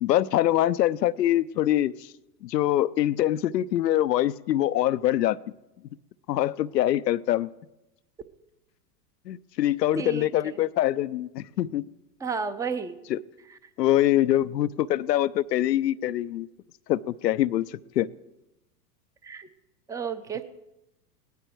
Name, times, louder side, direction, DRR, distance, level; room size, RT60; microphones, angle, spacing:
voice 1, 0.0-1.9 2.4-5.4 6.3-7.5 9.3-11.8 13.1-13.2 13.8-16.5 16.9-17.6 18.0-18.1, left 13 dB, 80° left, 14 dB, 0.7 m, -24 dB
voice 2, 9.9-10.3 12.2-13.0 19.2-19.5 19.9-20.4, right 5 dB, 5° right, 12 dB, 0.6 m, -31 dB
18.0 x 13.0 x 4.6 m, 0.93 s
hypercardioid pair, 105°, 49 cm